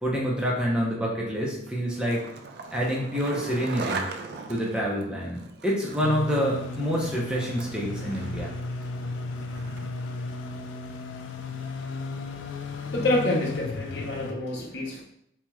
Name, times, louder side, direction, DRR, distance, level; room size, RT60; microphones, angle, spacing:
voice 1, 0.0-2.3 2.7-4.0 4.5-8.5, equal, 5° right, -4 dB, 0.7 m, -27 dB
Skateboard, 1.7-10.0, right 3 dB, 55° right, 0.3 m, -40 dB
sound 1, 6.0-14.3, left 3 dB, 80° left, 0.4 m, -35 dB
voice 2, 12.6-15.0, left 1 dB, 60° left, -2 dB, 0.9 m, -28 dB
4.4 x 2.9 x 2.3 m, 0.72 s
head